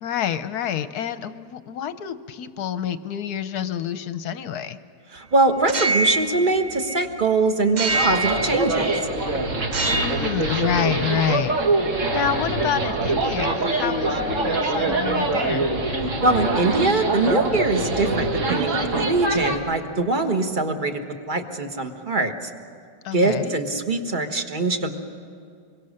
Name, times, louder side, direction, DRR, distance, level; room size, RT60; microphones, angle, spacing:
voice 1, 0.0-4.8 9.9-11.6 12.1-15.7 23.0-23.5, left 9 dB, 65° left, 12 dB, 1.2 m, -28 dB
voice 2, 5.1-8.9 16.2-21.0 21.3-22.5 23.1-24.9, right 2 dB, 30° right, 5 dB, 1.4 m, -22 dB
sound 1, 5.6-7.2 7.8-9.1 9.6-10.4, right 2 dB, 85° right, 0.4 m, -26 dB
sound 2, 7.9-19.6, right 2 dB, 45° right, 2.0 m, -24 dB
26.5 x 22.5 x 6.6 m, 2.4 s
omnidirectional pair, 1.9 m